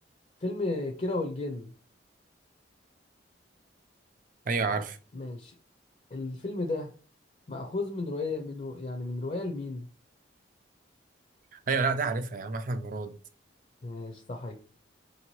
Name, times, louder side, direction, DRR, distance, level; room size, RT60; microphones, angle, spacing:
voice 1, 0.4-1.7 4.7-4.8 5.1-5.5 6.1-6.9 7.5-9.9 13.8-14.5, left 2 dB, 35° left, 0.4 m, -33 dB
voice 2, 4.5-5.0 11.5-13.2, right 4 dB, 45° right, 0.4 m, -29 dB
4.3 x 2.7 x 3.0 m
head